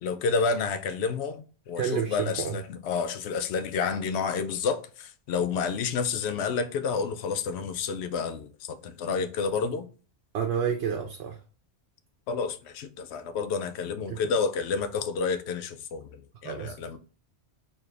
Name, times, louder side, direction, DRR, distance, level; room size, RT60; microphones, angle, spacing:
voice 1, 0.0-9.9 12.3-17.0, left 5 dB, 80° left, 0.8 m, -30 dB
voice 2, 1.8-2.6 10.3-11.4 14.1-14.2 16.4-16.8, right 7 dB, 75° right, 0.9 m, -29 dB
4.2 x 2.5 x 3.2 m
omnidirectional pair, 1.1 m